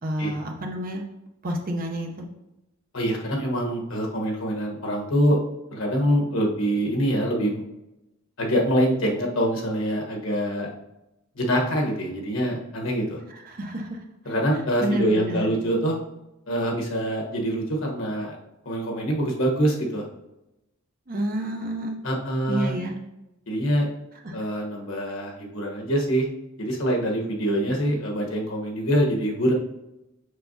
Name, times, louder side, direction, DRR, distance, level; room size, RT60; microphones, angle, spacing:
voice 1, 0.0-1.0 1.4-2.3 13.3-14.0 14.8-15.5 21.1-22.0 22.5-23.0 24.2-24.4, right 1 dB, 45° right, 2 dB, 0.7 m, -29 dB
voice 2, 2.9-5.4 5.7-7.6 8.4-10.7 11.3-13.2 14.3-15.9 16.5-18.4 18.6-20.0 22.0-22.7 23.5-23.9 24.3-26.3 26.6-29.5, equal, 70° left, 0 dB, 1.2 m, -25 dB
6.6 x 5.6 x 2.7 m, 0.93 s
head